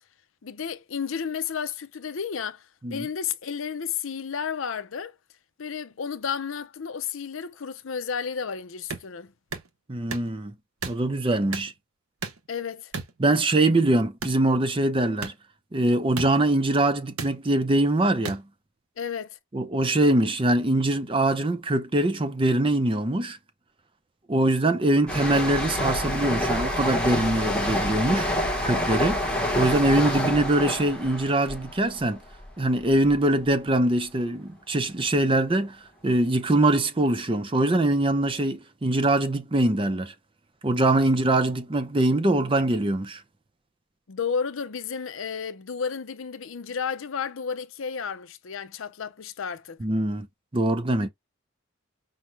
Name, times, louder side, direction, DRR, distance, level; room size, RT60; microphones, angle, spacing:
voice 1, 0.4-5.2 5.6-9.3 12.5-12.9 19.0-19.4 44.1-49.8, left 6 dB, 70° left, 0.6 m, -32 dB
sound 1, 8.9-9.1 9.5-9.7 10.1-10.3 10.8-11.0 11.5-11.7 12.2-12.5 12.9-13.1 14.2-14.4 15.2-15.3 16.2-16.3 17.2-17.3 18.2-18.4, right 5 dB, 85° right, 0.8 m, -33 dB
voice 2, 9.9-10.5 10.8-11.7 13.2-15.3 15.7-18.4 19.5-23.4 24.3-28.3 28.6-32.2 32.6-35.8 36.0-40.1 40.6-43.2 49.8-50.3 50.5-51.1, right 1 dB, 25° right, 0.5 m, -23 dB
sound 2, 25.1-32.5 32.8-33.1, left 1 dB, 5° left, 1.0 m, -27 dB
5.8 x 2.2 x 3.2 m
head